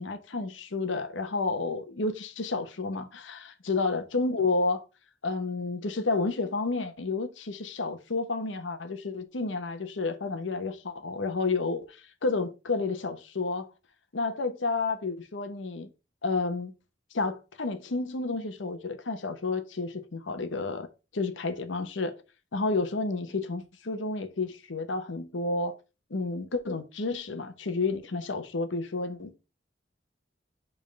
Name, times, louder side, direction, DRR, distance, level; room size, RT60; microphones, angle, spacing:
voice 1, 0.0-4.8 5.2-13.7 14.1-15.9 16.2-16.7 17.1-20.9 21.1-22.2 22.5-25.8 26.1-29.4, left 3 dB, 85° left, 0.9 m, -30 dB
5.4 x 3.6 x 5.0 m
head